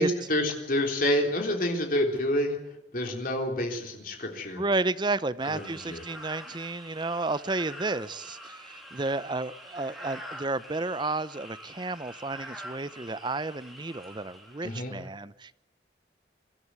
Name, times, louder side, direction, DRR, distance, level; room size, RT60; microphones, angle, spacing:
voice 1, 0.0-2.6 2.9-4.6 5.4-6.0 14.6-15.0, left 1 dB, 50° left, 3.6 m, -28 dB
voice 2, 4.6-15.6, right 3 dB, 25° right, 0.7 m, -32 dB
sound 1, 5.4-15.1, equal, ahead, 3.5 m, -46 dB
24.0 x 13.0 x 9.6 m
head